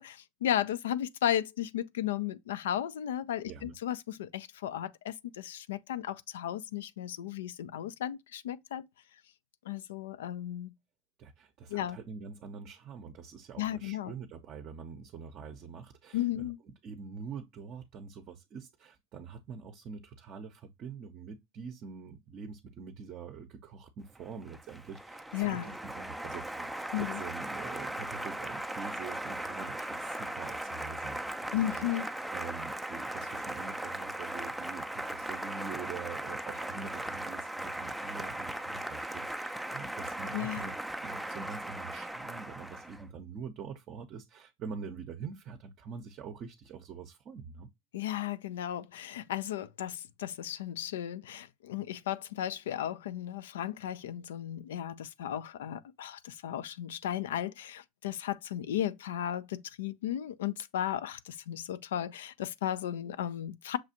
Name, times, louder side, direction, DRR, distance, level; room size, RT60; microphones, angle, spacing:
voice 1, 0.0-8.8 9.7-10.7 11.7-12.0 13.6-14.1 16.1-16.6 25.3-25.7 26.9-27.2 31.5-32.1 40.3-40.6 47.9-63.8, left 11 dB, 80° left, 0.3 m, -35 dB
voice 2, 11.2-16.5 16.8-40.7 41.0-47.7, right 6 dB, 45° right, 0.6 m, -45 dB
Applause, 24.2-43.0, right 1 dB, ahead, 0.4 m, -38 dB
6.1 x 2.4 x 2.7 m
hypercardioid pair, 95°, 0 cm